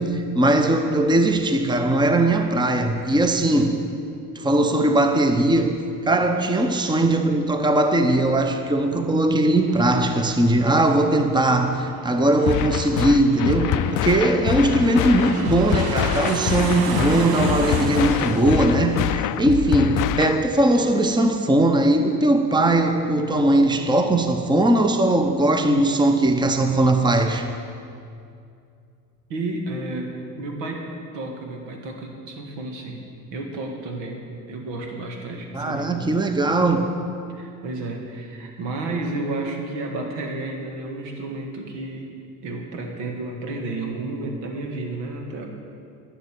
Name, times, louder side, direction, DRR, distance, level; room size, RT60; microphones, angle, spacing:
voice 1, 0.0-3.8 4.3-27.5 35.5-36.9, right 1 dB, 10° right, 6 dB, 1.0 m, -20 dB
Aircraft, 9.5-20.6, right 4 dB, 50° right, 1.3 m, -33 dB
sound 1, 12.5-20.5, left 13 dB, 45° left, 0.4 m, -25 dB
voice 2, 29.3-30.9 31.1-33.0 33.3-36.1 37.3-42.1 42.4-45.5, right 2 dB, 70° right, 2 dB, 2.0 m, -31 dB
11.5 x 7.1 x 8.3 m, 2.4 s
hypercardioid pair, 55°, 45 cm